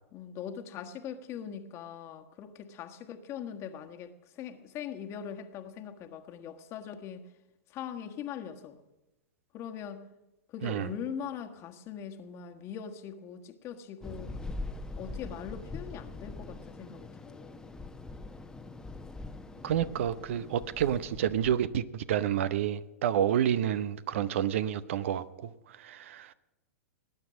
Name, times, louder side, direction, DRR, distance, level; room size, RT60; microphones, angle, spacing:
voice 1, 0.1-7.3 7.7-8.8 9.5-10.1 10.5-14.3 15.0-17.7, left 8 dB, 35° left, 1.5 m, -41 dB
sound 1, 14.0-21.6, left 2 dB, 10° left, 1.0 m, -42 dB
voice 2, 19.6-25.5 25.8-26.3, right 10 dB, 60° right, 0.7 m, -29 dB
19.0 x 9.7 x 6.2 m
figure-of-eight pair, 100°, 8 cm